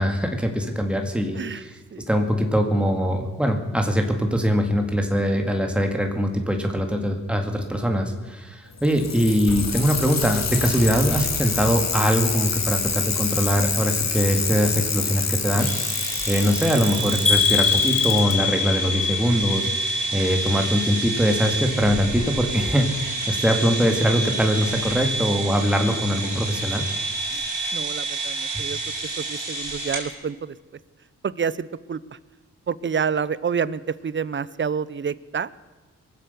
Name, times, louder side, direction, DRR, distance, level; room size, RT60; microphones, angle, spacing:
voice 1, 0.0-1.8 2.1-19.7 20.1-26.8 28.5-28.6, equal, 5° right, 3 dB, 2.0 m, -22 dB
Bicycle, 8.7-18.3 19.4-19.5, left 5 dB, 55° left, 1.9 m, -27 dB
sound 1, 15.6-30.1, right 3 dB, 70° right, 4.8 m, -29 dB
sound 2, 17.3-21.2 21.5-22.1 22.6-22.7 23.1-23.2, left 6 dB, 20° left, 1.3 m, -25 dB
voice 2, 27.7-28.8 29.2-30.5 31.2-32.0 32.7-35.5, right 6 dB, 35° right, 18 dB, 0.6 m, -28 dB
22.5 x 7.7 x 6.8 m, 1.2 s
cardioid pair, 70°, 32 cm